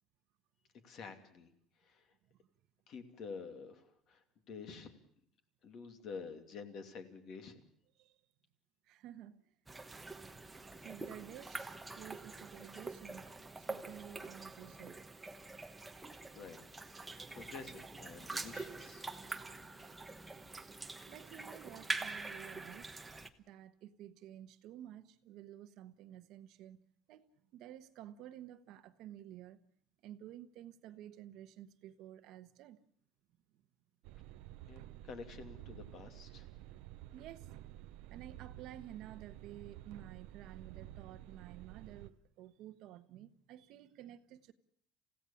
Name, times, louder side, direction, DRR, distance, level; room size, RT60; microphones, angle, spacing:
voice 1, 0.8-1.5 1.8-2.1 2.9-5.0 5.6-7.6 16.1-16.8 17.3-19.3 34.7-36.5, left 5 dB, 40° left, 2.7 m, -49 dB
voice 2, 8.8-9.5 10.8-11.7 11.9-15.0 19.2-19.8 21.1-23.1 23.5-26.8 27.1-27.3 27.5-29.6 30.0-32.8 37.1-37.6 37.9-44.5, right 12 dB, 55° right, 1.2 m, -52 dB
sound 1, 9.7-23.3, right 3 dB, 10° right, 1.1 m, -45 dB
sound 2, 34.0-42.1, right 14 dB, 75° right, 0.8 m, -52 dB
29.0 x 16.5 x 7.1 m
cardioid pair, 180°, 0 cm